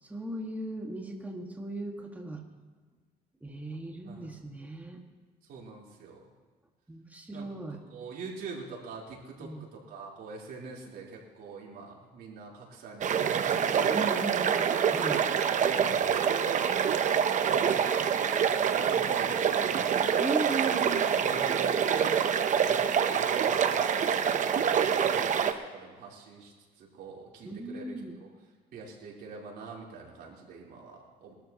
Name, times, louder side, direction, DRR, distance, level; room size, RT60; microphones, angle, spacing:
voice 1, 0.0-2.4 3.4-5.0 6.9-7.8 9.4-9.7 13.9-15.2 18.6-18.7 20.2-21.2 27.4-28.2, right 2 dB, 10° right, 1 dB, 1.9 m, -37 dB
voice 2, 5.4-6.2 7.3-7.5 7.9-9.5 9.9-13.4 13.8-14.8 15.6-17.2 17.6-18.1 18.7-20.0 21.2-22.3 22.6-26.5 26.8-28.3 28.7-31.3, right 4 dB, 65° right, -3 dB, 4.0 m, -44 dB
sound 1, 13.0-25.5, right 7 dB, 45° right, 0.9 m, -26 dB
21.0 x 13.0 x 3.0 m, 1.5 s
cardioid pair, 110°, 17 cm